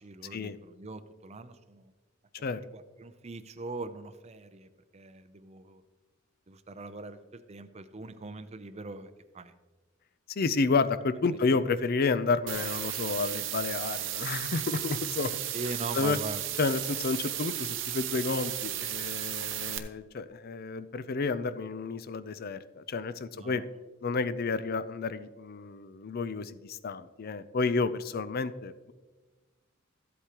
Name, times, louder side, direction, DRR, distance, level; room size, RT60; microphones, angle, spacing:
voice 1, 0.0-1.9 2.4-5.8 6.5-9.5 11.5-11.6 15.5-16.4 23.3-23.7 24.1-24.3, right 3 dB, 30° right, 11 dB, 0.6 m, -42 dB
voice 2, 10.3-15.3 15.9-16.2 16.6-23.6 24.0-28.9, left 4 dB, 50° left, 13 dB, 0.5 m, -30 dB
sound 1, 12.5-19.8, right 12 dB, 65° right, 0.8 m, -34 dB
14.0 x 8.1 x 3.0 m, 1.3 s
head